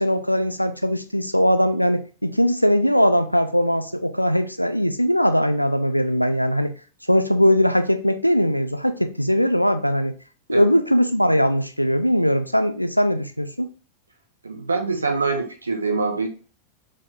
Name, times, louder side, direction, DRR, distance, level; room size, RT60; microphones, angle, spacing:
voice 1, 0.0-6.7 7.1-10.1 10.5-13.7, equal, 90° left, 10 dB, 0.5 m, -20 dB
voice 2, 14.4-16.3, right 4 dB, 75° right, 5 dB, 0.9 m, -24 dB
4.4 x 3.6 x 3.3 m, 0.37 s
figure-of-eight pair, 90°, 0 cm